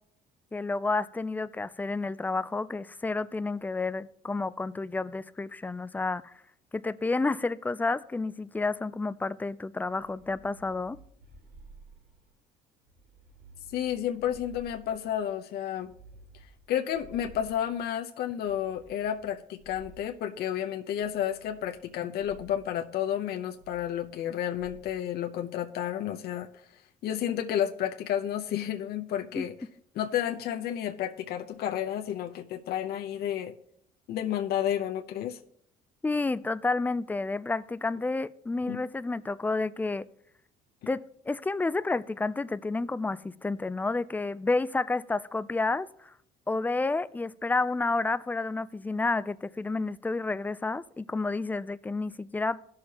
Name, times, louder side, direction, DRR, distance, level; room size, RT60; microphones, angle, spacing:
voice 1, 0.5-6.3 6.7-11.0 29.4-29.5 36.0-40.1 40.9-41.0 41.3-46.1 46.5-52.6, left 3 dB, 10° left, 0.3 m, -30 dB
sound 1, 9.9-12.4 12.8-15.3 15.7-17.9 18.4-20.3 20.9-21.9 22.2-22.7 23.5-24.3 24.5-25.0, right 3 dB, 70° right, 2.2 m, -54 dB
voice 2, 13.7-15.9 16.7-26.5 27.0-29.5 29.9-33.6 34.1-35.4 38.7-38.8, left 10 dB, 70° left, 0.8 m, -31 dB
16.5 x 6.5 x 2.9 m
cardioid pair, 110°, 17 cm